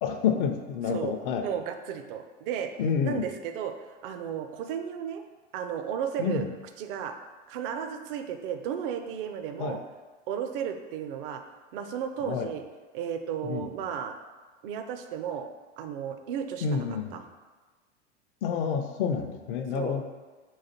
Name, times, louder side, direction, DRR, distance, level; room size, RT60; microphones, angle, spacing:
voice 1, 0.0-1.5 2.8-3.3 6.2-6.4 9.6-9.8 12.3-12.5 13.4-13.7 16.6-17.2 18.4-20.0, left 7 dB, 50° left, 6 dB, 0.5 m, -28 dB
voice 2, 0.9-2.7 3.0-3.7 4.0-5.2 5.5-6.5 6.8-7.1 7.5-9.8 10.3-11.4 11.7-12.6 12.9-14.2 14.6-15.5 15.8-17.2 19.7-20.0, right 8 dB, 55° right, 7 dB, 0.5 m, -34 dB
4.0 x 2.5 x 4.2 m, 1.3 s
hypercardioid pair, 90°, 34 cm